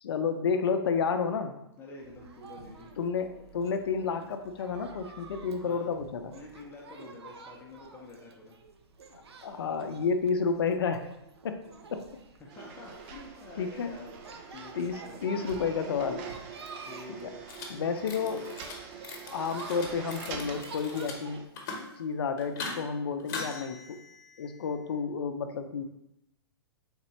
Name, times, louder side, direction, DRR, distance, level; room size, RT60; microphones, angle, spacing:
voice 1, 0.0-1.6 3.0-6.4 9.1-11.1 11.4-12.1 13.6-13.9 14.7-16.3 17.2-17.3 17.7-18.5 19.3-21.5 22.0-24.0 24.4-25.8, left 5 dB, 70° left, 8 dB, 0.5 m, -31 dB
voice 2, 1.8-2.9 5.6-5.9 6.3-8.6 12.4-14.2 14.5-15.4 16.9-17.4 20.3-20.6, left 2 dB, 15° left, -2 dB, 0.7 m, -48 dB
sound 1, 2.0-21.4, right 4 dB, 80° right, 0.5 m, -49 dB
sound 2, 12.5-21.5, right 6 dB, 35° right, 0.6 m, -45 dB
sound 3, 17.5-17.7 18.0-18.8 19.0-21.1 21.4-21.9 22.4-22.8 23.2-24.6, left 4 dB, 45° left, 0.9 m, -41 dB
4.0 x 3.6 x 3.0 m, 0.83 s
hypercardioid pair, 125°, 13 cm